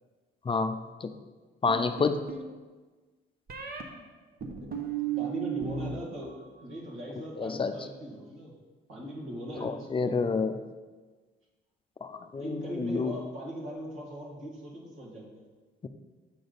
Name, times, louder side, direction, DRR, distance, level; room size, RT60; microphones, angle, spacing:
voice 1, 0.5-1.1 1.6-2.3 7.4-7.7 9.6-10.6 12.0-13.1, left 4 dB, 25° left, 8 dB, 0.4 m, -29 dB
sound 1, 1.7-2.5 3.5-3.8 4.4-5.9 6.2-6.8, right 8 dB, 50° right, 0.9 m, -35 dB
voice 2, 5.2-8.5 8.9-10.2 12.3-15.4, equal, 85° right, -4 dB, 2.0 m, -39 dB
7.1 x 5.0 x 4.0 m, 1.3 s
cardioid pair, 90°, 20 cm